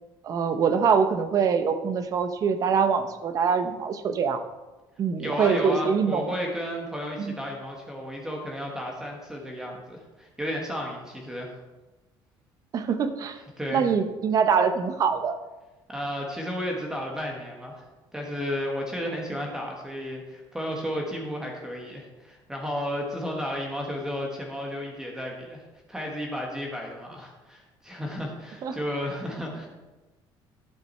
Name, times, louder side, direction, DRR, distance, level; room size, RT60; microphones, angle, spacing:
voice 1, 0.2-4.4 5.0-6.2 7.2-7.3 12.7-13.4 13.7-15.4 28.6-28.8, right 6 dB, 40° right, 9 dB, 0.8 m, -24 dB
voice 2, 5.2-11.5 13.6-13.9 15.9-17.8 18.1-25.6 25.9-29.7, equal, 5° right, 0 dB, 1.3 m, -33 dB
11.5 x 6.9 x 4.4 m, 1.1 s
cardioid pair, 160°, 9 cm